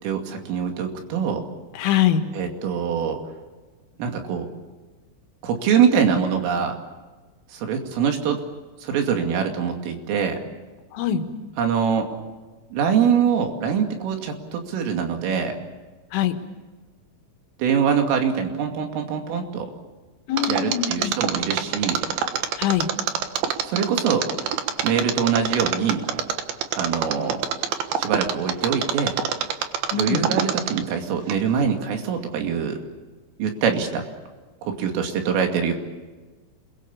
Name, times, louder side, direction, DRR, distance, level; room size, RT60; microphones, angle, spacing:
voice 1, 0.0-1.4 2.3-3.2 4.0-4.5 5.4-6.8 7.5-8.4 8.8-10.4 11.6-12.1 12.7-15.6 17.6-19.7 20.5-22.0 23.6-24.3 24.8-26.0 26.8-27.4 28.0-29.2 29.9-32.8 33.4-34.0 34.6-35.7, right 7 dB, 85° right, 4 dB, 5.1 m, -23 dB
voice 2, 1.7-2.2 10.9-11.2 16.1-16.4 20.3-21.1 22.6-22.9 29.9-30.3, left 10 dB, 80° left, 6 dB, 4.1 m, -23 dB
Mechanisms, 20.4-31.0 31.3-31.4, right 9 dB, 65° right, 2.7 m, -25 dB
28.5 x 22.0 x 7.2 m, 1.3 s
omnidirectional pair, 5.7 m